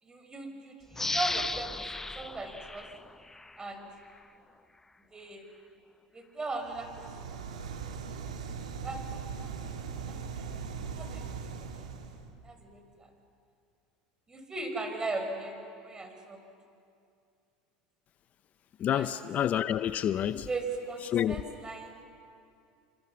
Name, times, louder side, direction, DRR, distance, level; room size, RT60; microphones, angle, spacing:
voice 1, 0.0-1.9 2.2-2.9 3.6-3.9 5.1-5.4 6.1-7.1 8.2-8.3 8.8-9.5 10.1-10.6 10.9-11.3 11.6-11.7 12.4-13.1 14.3-16.4 18.9-19.1 20.5-22.1, right 3 dB, 20° right, 5 dB, 5.8 m, -38 dB
sound 1, 0.9-3.6 4.1-4.2, left 2 dB, 10° left, 0.6 m, -35 dB
sound 2, 6.6-12.3, right 6 dB, 90° right, 2.3 m, -40 dB
voice 2, 18.8-20.5 21.0-21.4, left 10 dB, 45° left, 13 dB, 0.7 m, -28 dB
29.5 x 26.5 x 7.1 m, 2.5 s
hypercardioid pair, 85°, 4 cm